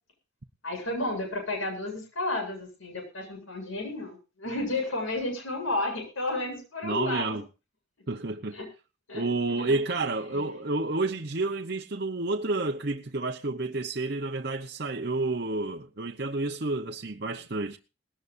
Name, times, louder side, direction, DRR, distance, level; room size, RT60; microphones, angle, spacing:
voice 1, 0.6-7.4 8.5-8.6 9.1-9.2 9.7-9.8 10.3-10.4, left 2 dB, 90° left, 8.0 m, -32 dB
voice 2, 6.8-7.4 8.1-8.6 9.1-17.8, right 2 dB, 50° right, 0.9 m, -30 dB
20.0 x 18.0 x 2.6 m
head